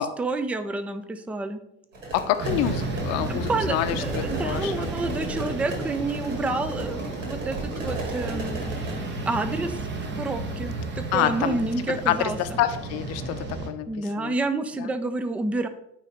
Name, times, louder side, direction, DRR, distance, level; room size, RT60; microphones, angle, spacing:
voice 1, 0.2-1.6 3.3-9.8 10.1-12.4 13.9-15.7, right 3 dB, 5° right, 10 dB, 0.4 m, -29 dB
sound 1, 1.9-9.0, right 1 dB, 70° right, 2.0 m, -35 dB
voice 2, 2.1-4.9 11.1-11.6 11.9-14.3 14.8-14.9, left 12 dB, 40° left, 11 dB, 0.7 m, -27 dB
sound 2, 2.4-13.7, right 3 dB, 30° right, 1.2 m, -32 dB
9.0 x 3.2 x 5.1 m, 0.81 s
figure-of-eight pair, 65°, 38 cm